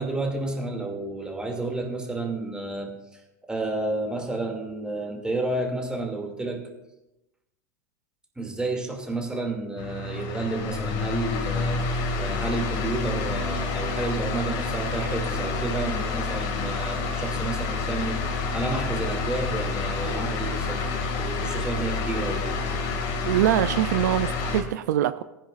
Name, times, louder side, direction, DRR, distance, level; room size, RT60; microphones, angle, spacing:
voice 1, 0.0-6.7 8.4-22.6, right 2 dB, 10° right, 2 dB, 2.6 m, -31 dB
sound 1, 9.8-24.6, left 4 dB, 50° left, 2.4 m, -28 dB
voice 2, 23.2-25.2, right 12 dB, 70° right, 12 dB, 0.5 m, -23 dB
19.0 x 10.0 x 2.6 m, 0.95 s
hypercardioid pair, 100°, 10 cm